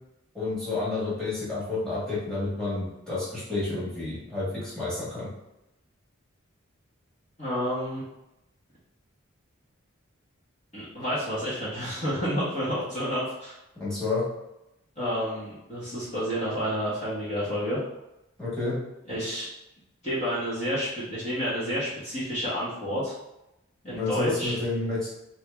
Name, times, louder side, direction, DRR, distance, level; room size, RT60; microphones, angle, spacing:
voice 1, 0.3-5.3 13.8-14.2 18.4-18.8 23.9-25.1, left 3 dB, 5° left, -11 dB, 1.3 m, -30 dB
voice 2, 7.4-8.0 10.7-13.6 15.0-17.8 19.1-19.5 20.0-23.1 23.8-24.6, equal, 30° left, -10 dB, 1.0 m, -30 dB
2.9 x 2.7 x 3.3 m, 0.91 s
head